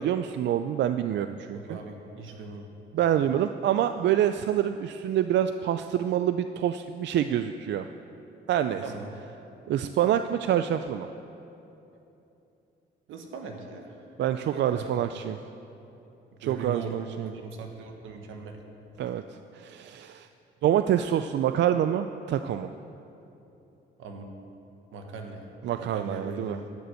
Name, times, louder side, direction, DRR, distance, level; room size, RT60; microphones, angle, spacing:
voice 1, 0.0-1.8 2.9-7.9 8.5-8.8 9.7-11.1 14.2-15.4 16.4-17.3 19.0-20.3 20.6-22.7 25.6-26.6, right 10 dB, 65° right, 10 dB, 0.4 m, -26 dB
voice 2, 1.5-2.7 8.8-9.1 13.1-14.0 14.5-14.9 16.4-16.9 17.2-18.6 24.0-24.3 24.9-26.6, right 4 dB, 85° right, 3 dB, 1.4 m, -39 dB
12.0 x 6.8 x 7.8 m, 2.9 s
cardioid pair, 90°, 20 cm